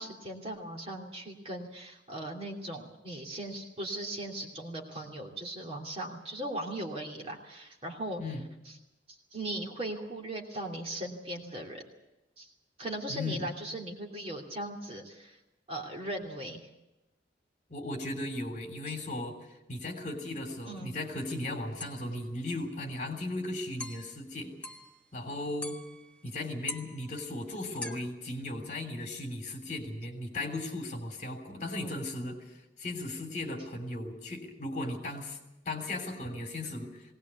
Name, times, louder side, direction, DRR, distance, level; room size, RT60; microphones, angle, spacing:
voice 1, 0.0-8.2 8.7-8.8 9.1-11.8 12.4-12.5 12.8-15.4 15.7-16.7 20.6-20.9 31.7-32.0, right 1 dB, 30° right, 1 dB, 2.9 m, -38 dB
voice 2, 13.1-13.5 17.7-24.6 25.1-25.8 26.2-35.4 35.6-37.0, left 2 dB, 40° left, 4 dB, 3.3 m, -37 dB
sound 1, 20.8-20.9 21.3-21.5 21.8-22.1 22.6-22.7 23.1-23.3 23.8-24.2 24.6-25.1 25.6-26.4 26.6-28.0, left 2 dB, 5° left, 1.2 m, -43 dB
20.0 x 18.5 x 8.4 m, 0.97 s
head